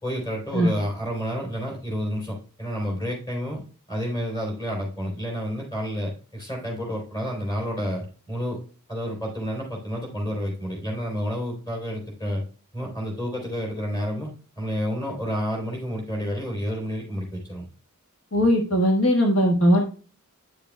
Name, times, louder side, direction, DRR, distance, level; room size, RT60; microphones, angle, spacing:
voice 1, 0.0-3.6 3.9-8.6 8.9-12.4 12.7-17.7, equal, 20° left, 0 dB, 3.6 m, -30 dB
voice 2, 18.3-19.8, equal, 65° left, 1 dB, 1.4 m, -19 dB
10.0 x 6.9 x 2.2 m, 0.38 s
head